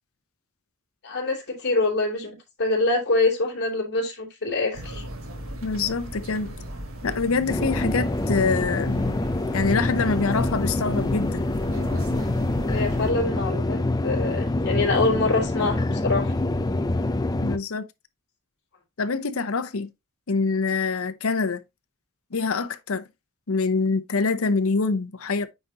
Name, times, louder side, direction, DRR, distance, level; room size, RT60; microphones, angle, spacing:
voice 1, 1.0-5.0 12.6-16.3, left 3 dB, 55° left, 3.1 m, -25 dB
sound 1, 4.7-13.1, right 1 dB, 70° right, 1.5 m, -36 dB
voice 2, 5.6-6.5 7.0-9.2 9.5-11.4 17.4-17.9 19.0-19.9 20.3-21.6 22.3-23.0 23.5-25.5, left 4 dB, 75° left, 0.7 m, -25 dB
sound 2, 7.5-17.6, left 2 dB, 20° left, 0.4 m, -26 dB
9.2 x 4.0 x 2.8 m
head